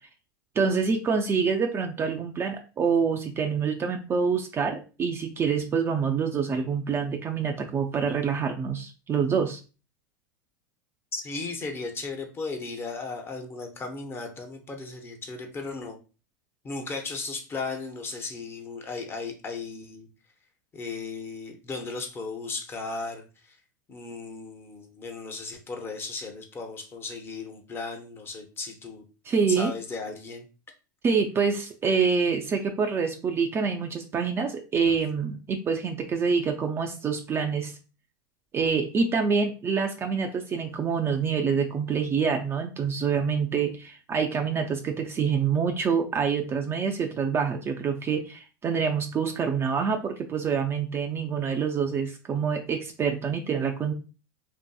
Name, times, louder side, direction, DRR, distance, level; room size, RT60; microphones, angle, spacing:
voice 1, 0.6-9.6 29.2-29.7 31.0-37.8 38.5-53.9, right 6 dB, 25° right, 3 dB, 0.3 m, -26 dB
voice 2, 11.1-16.0 16.6-20.1 20.7-23.6 23.9-29.0 29.5-30.5 34.9-35.0, left 3 dB, 20° left, 4 dB, 0.6 m, -36 dB
2.6 x 2.5 x 2.2 m, 0.34 s
hypercardioid pair, 105°, 10 cm